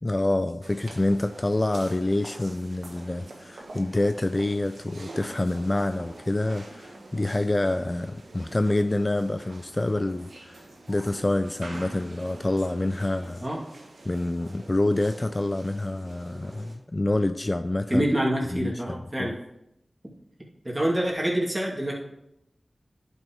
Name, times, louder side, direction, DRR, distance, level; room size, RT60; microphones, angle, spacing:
voice 1, 0.0-13.5 14.0-18.1 18.5-19.4, left 2 dB, 30° left, 9 dB, 0.3 m, -27 dB
sound 1, 0.6-16.8, right 2 dB, 85° right, 1.2 m, -46 dB
voice 2, 17.9-19.4 20.6-21.9, right 1 dB, 20° right, -3 dB, 2.3 m, -26 dB
10.5 x 5.4 x 3.0 m, 0.84 s
wide cardioid pair, 60°, 0 cm